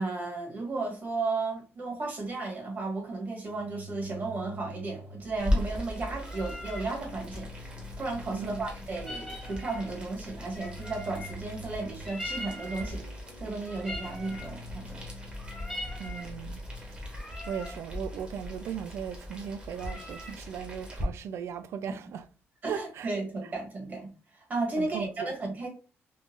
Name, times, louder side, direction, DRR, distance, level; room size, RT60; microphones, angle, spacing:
voice 1, 0.0-13.0 13.4-15.1 22.6-25.7, right 3 dB, 40° right, 1.4 m, -34 dB
sound 1, 3.5-17.1, equal, 65° left, 0.3 m, -46 dB
Boiling, 5.4-21.0, left 1 dB, 25° right, 1.1 m, -39 dB
sound 2, 6.2-6.9 8.9-10.0 10.6-11.5 12.0-13.0 13.7-14.6 15.3-16.3 17.0-17.8 19.7-20.4, left 1 dB, 10° left, 0.7 m, -42 dB
voice 2, 8.3-8.7 16.0-16.6 17.5-22.2 22.6-23.1 24.8-25.3, right 8 dB, 70° right, 0.3 m, -37 dB
3.8 x 2.4 x 2.5 m
cardioid pair, 130°, 5 cm